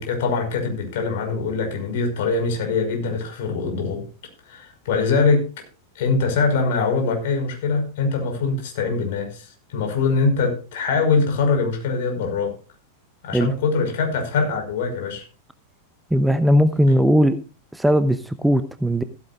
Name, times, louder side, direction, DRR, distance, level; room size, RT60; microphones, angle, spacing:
voice 1, 0.0-4.0 4.5-5.4 6.0-12.5 13.2-15.2, left 4 dB, 55° left, 4 dB, 5.6 m, -23 dB
voice 2, 16.1-17.4 17.7-19.0, equal, 5° right, 12 dB, 0.8 m, -18 dB
15.5 x 14.0 x 2.5 m, 0.33 s
figure-of-eight pair, 90°, 0 cm